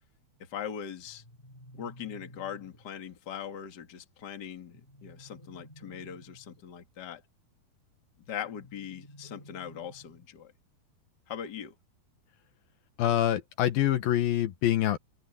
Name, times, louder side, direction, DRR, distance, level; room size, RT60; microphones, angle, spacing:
voice 1, 0.4-1.2 1.7-7.2 8.3-10.5 11.3-11.7, left 8 dB, 35° left, 2.0 m, -40 dB
sound 1, 1.0-3.0 4.7-6.7 8.4-10.4, equal, 10° left, 6.3 m, -53 dB
voice 2, 13.0-15.0, left 12 dB, 75° left, 2.9 m, -25 dB
omnidirectional pair, 4.3 m